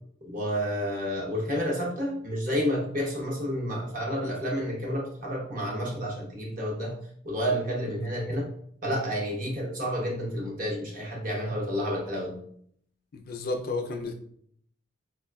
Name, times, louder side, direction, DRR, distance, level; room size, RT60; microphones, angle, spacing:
voice 1, 0.2-6.9 7.2-8.5 8.8-12.4, equal, 45° right, -2 dB, 0.8 m, -30 dB
voice 2, 13.1-14.1, left 3 dB, 50° left, 4 dB, 0.3 m, -32 dB
4.0 x 2.3 x 2.2 m, 0.65 s
head